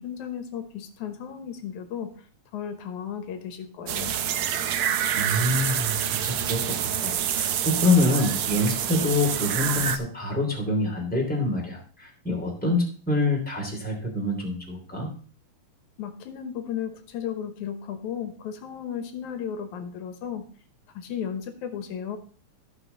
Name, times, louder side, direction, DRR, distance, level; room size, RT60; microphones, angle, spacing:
voice 1, 0.0-2.1 2.5-4.2 16.0-20.5 20.9-22.2, left 8 dB, 85° left, 7 dB, 2.6 m, -34 dB
sound 1, 3.9-10.0, right 9 dB, 90° right, 1.1 m, -27 dB
voice 2, 5.1-15.1, left 2 dB, 5° left, -2 dB, 2.8 m, -26 dB
14.5 x 5.8 x 4.0 m, 0.41 s
omnidirectional pair, 3.3 m